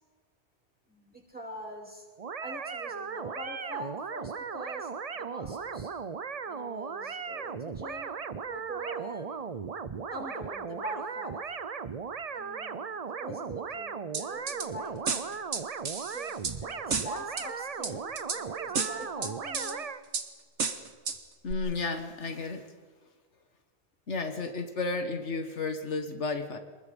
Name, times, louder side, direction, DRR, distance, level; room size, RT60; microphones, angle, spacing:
voice 1, 0.9-2.1 2.4-5.9 6.4-8.1 8.5-9.4 10.1-11.4 12.3-14.9 16.1-19.9, right 2 dB, 10° right, -2 dB, 6.0 m, -42 dB
sound 1, 2.2-20.0, right 6 dB, 40° right, 0.7 m, -37 dB
sound 2, 14.1-14.7 15.1-16.6 16.9-17.5 17.8-18.4 18.7-19.7 20.1-20.3 20.6-21.2 21.5-21.6, right 5 dB, 80° right, 1.8 m, -32 dB
voice 2, 21.4-22.7 24.1-26.6, left 3 dB, 80° left, 7 dB, 1.9 m, -32 dB
28.5 x 21.0 x 5.3 m, 1.5 s
omnidirectional pair, 1.2 m